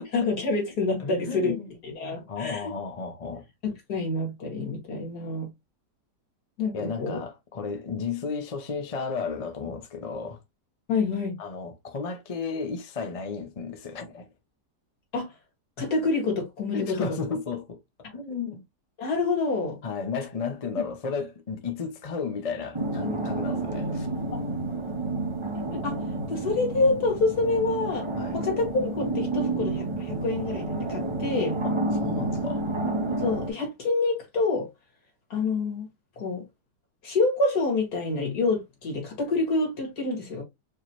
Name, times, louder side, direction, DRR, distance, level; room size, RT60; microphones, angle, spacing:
voice 1, 0.0-1.5 1.8-2.7 3.6-5.5 6.6-7.2 10.9-11.4 15.1-15.3 15.8-17.2 19.0-19.8 20.8-20.9 24.3-24.4 25.8-26.0 26.3-28.1 28.3-31.6 33.2-34.7 35.3-35.9 36.2-36.5 37.0-40.4, left 3 dB, 70° left, 2.4 m, -27 dB
voice 2, 1.0-1.7 2.0-3.4 6.7-10.4 11.4-14.3 16.7-17.8 18.1-18.6 19.8-24.1 28.2-28.4 31.6-31.7 32.0-32.6, left 5 dB, 35° left, 0.6 m, -33 dB
sound 1, 22.7-33.5, right 2 dB, 30° right, 0.6 m, -30 dB
4.7 x 3.0 x 2.9 m
omnidirectional pair, 1.7 m